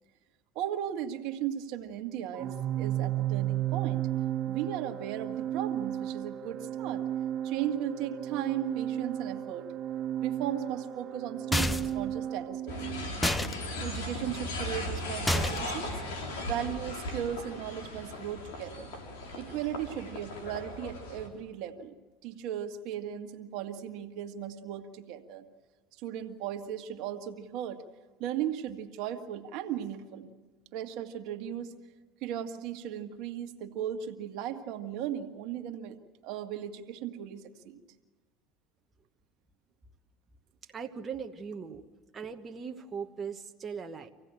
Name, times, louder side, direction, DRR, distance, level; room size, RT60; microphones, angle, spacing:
voice 1, 0.5-4.0 4.5-7.0 7.4-9.7 10.2-12.7 13.8-16.0 16.5-18.9 19.4-21.9 22.2-25.4 26.0-27.8 28.2-30.3 30.7-31.7 32.2-36.0 36.2-37.8, right 10 dB, 65° right, 7 dB, 1.6 m, -36 dB
Organ, 2.4-13.1, right 12 dB, 45° right, 0.8 m, -34 dB
sound 1, 11.5-12.0 13.2-13.5 15.3-15.8, left 1 dB, 10° left, 0.9 m, -28 dB
sound 2, 12.7-21.3, left 1 dB, 80° left, 3.9 m, -37 dB
voice 2, 40.7-41.8 42.1-44.1, right 6 dB, 30° right, 4 dB, 1.2 m, -39 dB
26.0 x 16.5 x 9.0 m, 1.4 s
supercardioid pair, 95°, 0 cm